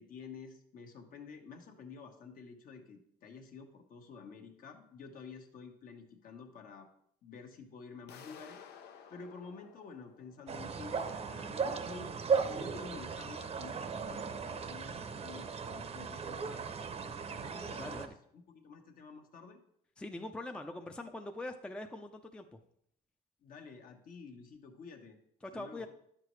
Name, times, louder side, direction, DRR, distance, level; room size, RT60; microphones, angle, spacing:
voice 1, 0.0-6.9 7.2-8.6 9.1-12.1 12.4-16.8 17.1-18.1 18.3-19.6 23.4-25.2 25.5-25.9, left 5 dB, 55° left, 4 dB, 1.2 m, -50 dB
sound 1, 8.1-10.9, left 8 dB, 75° left, 0.8 m, -55 dB
sound 2, 10.5-18.1, right 5 dB, 35° right, 0.7 m, -37 dB
voice 2, 17.8-18.1 20.0-22.6 25.4-25.9, left 2 dB, 5° left, 5 dB, 0.5 m, -43 dB
10.0 x 6.7 x 3.1 m, 0.70 s
cardioid pair, 110°, 17 cm